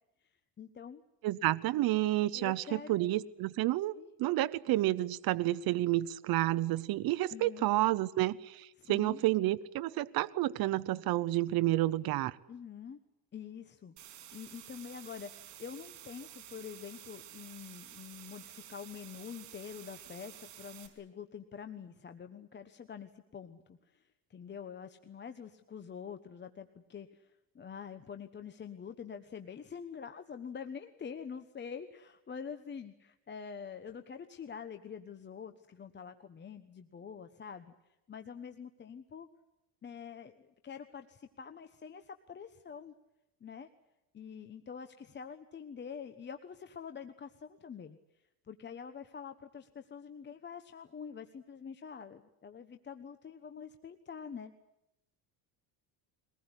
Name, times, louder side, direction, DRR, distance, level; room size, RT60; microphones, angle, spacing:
voice 1, 0.6-1.0 2.3-3.0 4.0-4.1 7.3-7.7 8.8-9.2 12.5-13.0 13.3-37.7 38.1-39.3 39.8-42.9 43.4-43.7 44.1-48.0 48.5-54.5, left 7 dB, 25° left, 8 dB, 1.1 m, -46 dB
voice 2, 1.2-12.4, right 16 dB, 60° right, 13 dB, 0.9 m, -30 dB
sound 1, 14.0-20.9, right 11 dB, 80° right, 5.0 m, -51 dB
23.0 x 19.5 x 9.9 m, 0.90 s
cardioid pair, 135°, 41 cm